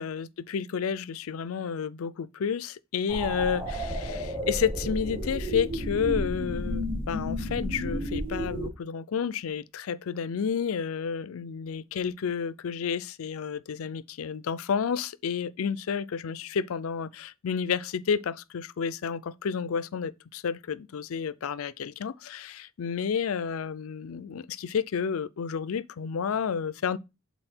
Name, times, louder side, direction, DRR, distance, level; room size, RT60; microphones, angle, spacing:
voice 1, 0.0-27.0, left 6 dB, 85° left, 0.4 m, -31 dB
sound 1, 3.1-8.7, equal, 25° right, 3.2 m, -32 dB
7.8 x 4.1 x 4.3 m
head